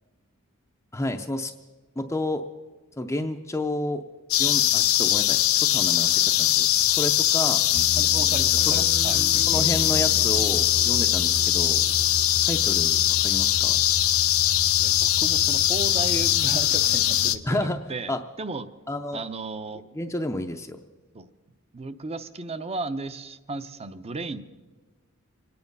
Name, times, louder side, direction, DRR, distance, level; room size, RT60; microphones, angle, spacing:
voice 1, 0.9-1.5 2.0-2.4 3.0-4.0 4.4-7.6 9.5-11.8 12.4-13.8 17.5-17.8 18.1-18.2 18.9-19.2 20.0-20.8, left 1 dB, 15° left, 4 dB, 0.5 m, -30 dB
sound 1, 4.3-17.4, left 13 dB, 70° left, 0.6 m, -21 dB
sound 2, 7.7-17.8, right 1 dB, 70° right, 2.6 m, -35 dB
voice 2, 8.0-9.2 14.8-18.1 18.4-18.7 19.1-19.8 21.1-21.3 21.7-24.4, right 3 dB, 30° right, 12 dB, 0.7 m, -34 dB
26.0 x 9.5 x 5.4 m, 1.3 s
head